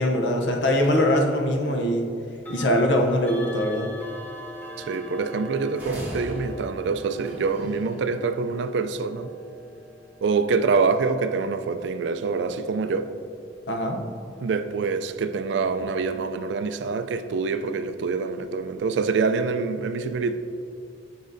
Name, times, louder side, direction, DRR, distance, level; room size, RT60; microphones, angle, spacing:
voice 1, 0.0-2.1 2.5-3.9 13.7-14.0, left 1 dB, 65° left, 0.6 m, -22 dB
sound 1, 0.8-1.0 2.3-13.2, left 2 dB, 10° left, 0.6 m, -43 dB
voice 2, 4.8-9.3 10.2-13.1 14.4-20.4, right 4 dB, 65° right, 0.3 m, -25 dB
sound 2, 5.7-8.0, equal, 10° right, 1.3 m, -38 dB
8.4 x 5.1 x 2.6 m
head